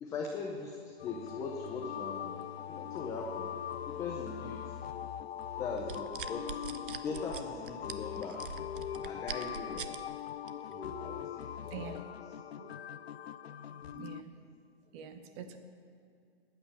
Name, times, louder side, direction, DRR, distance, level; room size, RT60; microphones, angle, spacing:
voice 1, 0.0-3.5 3.8-4.7 5.6-8.4 9.0-9.9 10.7-12.0, left 4 dB, 10° left, 1 dB, 0.7 m, -40 dB
sound 1, 1.0-14.2, left 10 dB, 75° left, 0.6 m, -41 dB
sound 2, 5.8-10.0 10.5-10.7, right 8 dB, 55° right, 0.9 m, -42 dB
voice 2, 11.7-12.0 12.5-12.8 13.4-13.5 13.9-14.3 14.9-15.6, right 7 dB, 30° right, 8 dB, 1.0 m, -45 dB
21.0 x 9.0 x 5.7 m, 2.3 s
hypercardioid pair, 145°, 32 cm